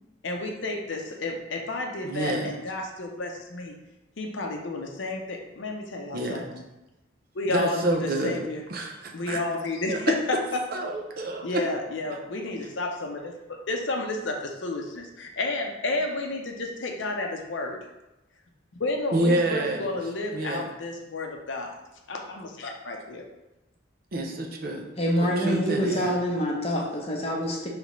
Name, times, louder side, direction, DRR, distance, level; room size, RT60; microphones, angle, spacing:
voice 1, 0.2-3.7 4.2-6.6 7.3-8.6 9.1-10.6 11.4-17.8 18.8-21.8 22.1-23.2, left 2 dB, 65° left, 2 dB, 0.7 m, -31 dB
voice 2, 2.0-2.5 6.1-6.5 7.4-8.4 8.7-9.4 9.9-10.0 10.7-11.6 19.1-19.9 20.3-20.7 24.1-24.9 25.2-26.2, right 1 dB, 45° right, 2 dB, 0.5 m, -28 dB
voice 3, 25.0-27.7, equal, 30° left, -1 dB, 0.8 m, -26 dB
5.2 x 3.3 x 3.1 m, 0.98 s
head